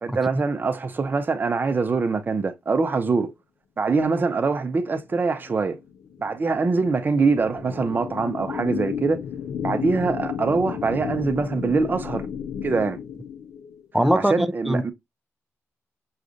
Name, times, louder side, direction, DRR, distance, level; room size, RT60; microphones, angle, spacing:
voice 1, 0.0-3.3 3.8-5.8 6.2-9.2 9.6-12.3 12.6-13.0 14.1-14.9, right 4 dB, 35° right, 0.7 m, -23 dB
sound 1, 5.1-13.9, left 8 dB, 75° left, 0.5 m, -33 dB
voice 2, 13.9-14.9, right 1 dB, ahead, 0.4 m, -22 dB
6.1 x 2.4 x 2.5 m
cardioid pair, 85°, 6 cm